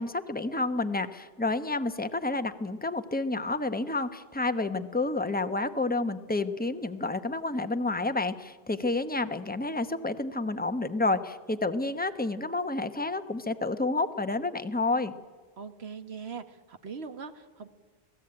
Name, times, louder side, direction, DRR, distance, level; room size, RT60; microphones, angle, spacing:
voice 1, 0.0-15.1, left 2 dB, 10° left, 9 dB, 0.9 m, -30 dB
voice 2, 15.6-17.7, right 5 dB, 85° right, 9 dB, 1.7 m, -41 dB
26.5 x 18.0 x 8.8 m, 1.5 s
omnidirectional pair, 1.0 m